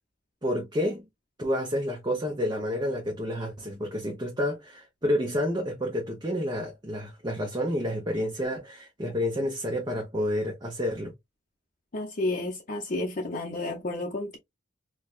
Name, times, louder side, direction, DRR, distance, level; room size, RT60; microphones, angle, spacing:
voice 1, 0.4-1.0 1.4-11.1, left 1 dB, 25° right, 0.8 m, -29 dB
voice 2, 11.9-14.4, left 2 dB, 45° left, 0.7 m, -31 dB
4.6 x 2.3 x 2.4 m
head